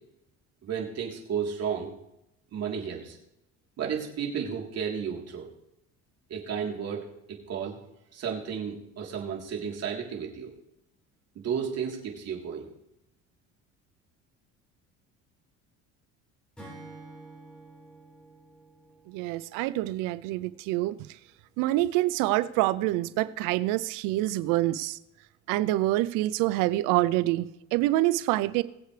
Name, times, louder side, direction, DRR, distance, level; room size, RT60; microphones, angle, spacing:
voice 1, 0.6-1.9 2.5-3.2 3.8-5.5 6.3-7.8 8.1-10.5 11.3-12.7, right 7 dB, 50° right, 3.6 m, -33 dB
Acoustic guitar / Strum, 16.6-20.0, right 2 dB, 5° left, 5.2 m, -49 dB
voice 2, 19.1-21.0 21.6-25.0 25.5-28.6, right 16 dB, 90° right, 0.6 m, -26 dB
21.5 x 8.0 x 3.3 m
cardioid pair, 115°, 31 cm